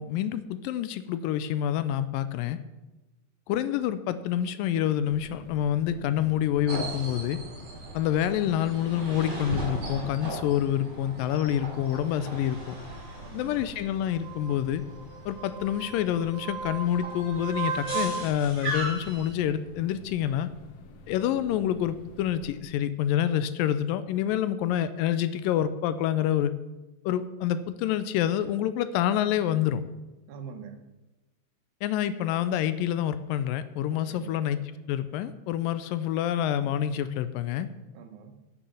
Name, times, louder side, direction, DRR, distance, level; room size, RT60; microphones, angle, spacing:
voice 1, 0.0-2.6 3.5-7.4 7.9-12.8 13.3-14.8 15.3-20.5 21.1-26.5 27.1-29.8 31.8-34.6 34.9-37.7, left 10 dB, 80° left, 13 dB, 2.3 m, -27 dB
sound 1, 5.1-22.6, left 2 dB, 65° left, 1.5 m, -50 dB
sound 2, 6.7-19.3, right 3 dB, 45° right, 5.9 m, -36 dB
voice 2, 13.2-13.7 30.3-30.9 33.9-34.5 37.9-38.4, right 6 dB, 80° right, 8 dB, 2.9 m, -45 dB
9.8 x 8.9 x 7.0 m, 1.1 s
omnidirectional pair, 4.1 m